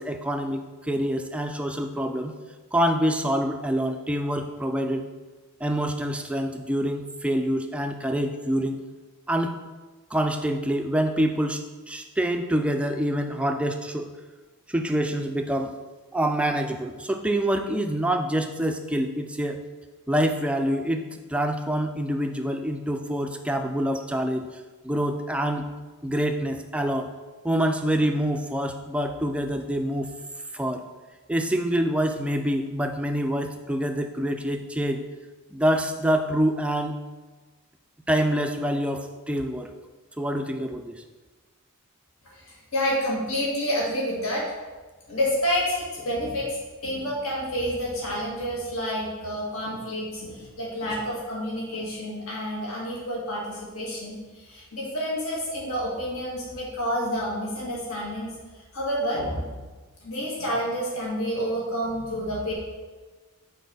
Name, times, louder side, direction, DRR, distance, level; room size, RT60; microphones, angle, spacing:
voice 1, 0.0-2.3 2.7-5.1 5.6-8.8 9.3-9.5 10.1-14.1 14.7-15.8 16.1-19.6 20.1-25.7 26.0-27.1 27.4-30.1 30.5-30.8 31.3-35.0 35.5-36.9 38.1-39.7 40.2-41.0, equal, 5° right, 5 dB, 0.3 m, -26 dB
voice 2, 42.4-44.5 45.1-58.3 58.7-59.6 60.0-62.5, equal, 70° left, -5 dB, 1.8 m, -29 dB
6.4 x 4.0 x 5.5 m, 1.3 s
head